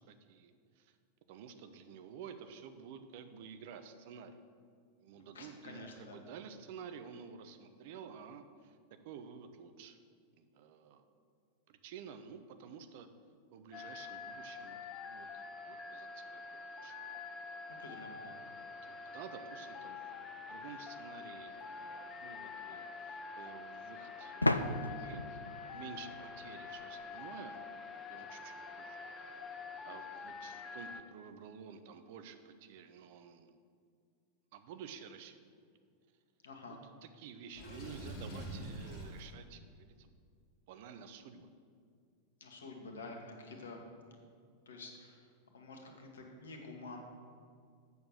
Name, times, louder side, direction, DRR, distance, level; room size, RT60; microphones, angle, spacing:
voice 1, 0.1-1.0 1.3-4.4 5.0-8.8 9.0-10.0 10.3-11.0 11.7-13.1 13.5-17.0 18.6-27.6 28.1-29.0 29.9-33.6 34.5-35.4 36.7-40.1 40.7-41.5, right 7 dB, 50° right, 9 dB, 0.7 m, -51 dB
voice 2, 5.1-6.2 17.7-18.4 36.4-36.8 42.4-44.1 44.6-45.2 45.5-47.0, left 3 dB, 65° left, 2 dB, 1.5 m, -49 dB
sound 1, 13.7-31.0, left 4 dB, 25° left, 0.7 m, -46 dB
sound 2, 21.4-21.5 24.4-27.0, left 1 dB, 85° left, 0.4 m, -35 dB
Water / Sink (filling or washing), 37.5-39.3, right 1 dB, 40° left, 2.4 m, -44 dB
8.1 x 6.8 x 6.6 m, 2.2 s
figure-of-eight pair, 90°, 0 cm